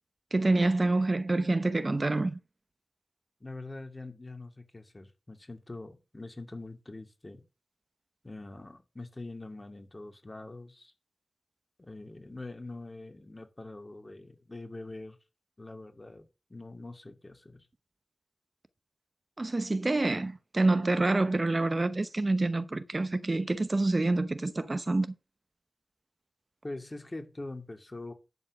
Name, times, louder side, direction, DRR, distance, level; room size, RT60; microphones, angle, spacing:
voice 1, 0.3-2.4 19.4-25.1, right 2 dB, 45° right, 0.8 m, -27 dB
voice 2, 3.4-7.4 8.2-10.9 11.8-15.2 15.6-17.7 26.6-28.1, left 2 dB, 35° left, 2.6 m, -44 dB
11.0 x 4.6 x 7.4 m
cardioid pair, 45°, 0 cm